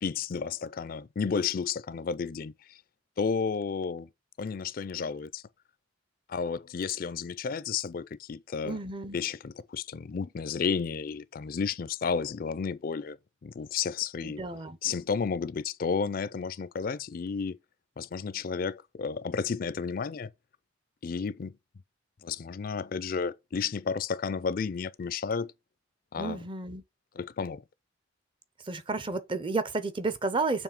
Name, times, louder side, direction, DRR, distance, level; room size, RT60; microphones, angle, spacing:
voice 1, 0.0-2.8 3.2-4.1 4.4-5.4 6.3-8.8 9.1-13.2 13.4-14.4 14.8-17.6 18.0-20.3 21.0-21.6 22.2-25.5 26.1-26.4 27.1-27.6, left 5 dB, 45° left, 0.4 m, -32 dB
voice 2, 8.6-9.2 14.2-14.8 26.1-26.8 28.6-30.6, right 3 dB, 25° right, 0.6 m, -31 dB
7.0 x 3.1 x 5.8 m
head